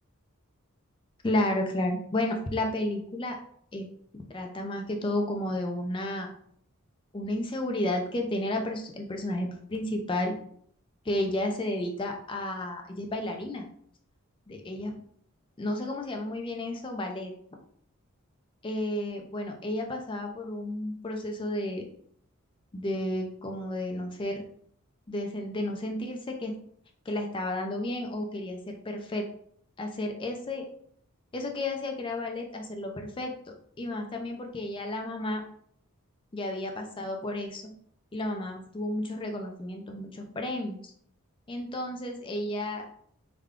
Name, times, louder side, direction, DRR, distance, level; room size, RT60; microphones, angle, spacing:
voice 1, 1.2-3.4 3.7-3.9 4.3-6.3 7.1-10.4 11.0-13.7 14.5-14.9 15.6-17.3 18.6-21.8 22.7-24.4 25.1-26.5 27.1-29.3 29.8-30.7 31.3-33.3 33.8-35.4 36.3-37.6 38.1-40.9 41.5-42.9, left 1 dB, 25° left, 3 dB, 0.4 m, -32 dB
3.5 x 2.2 x 3.5 m, 0.65 s
head